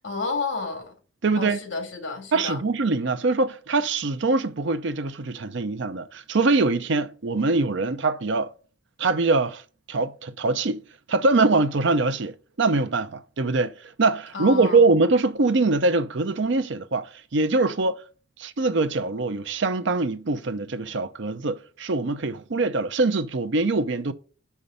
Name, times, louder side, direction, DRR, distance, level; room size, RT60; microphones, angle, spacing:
voice 1, 0.0-0.9 1.4-2.6 14.3-14.8, left 4 dB, 65° left, 2.3 m, -31 dB
voice 2, 1.2-1.6 2.3-8.5 9.0-9.6 9.9-10.8 11.1-18.0 18.4-24.1, right 3 dB, 65° right, 0.6 m, -23 dB
5.7 x 5.6 x 6.5 m
head